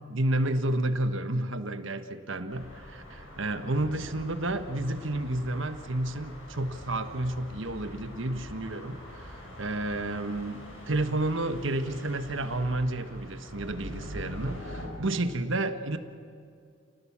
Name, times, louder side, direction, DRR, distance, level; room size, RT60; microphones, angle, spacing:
voice 1, 0.1-9.0 9.3-16.0, right 1 dB, 70° right, 9 dB, 1.3 m, -31 dB
sound 1, 2.5-14.9, equal, 80° left, 6.4 m, -44 dB
30.0 x 18.5 x 7.4 m, 2.4 s
head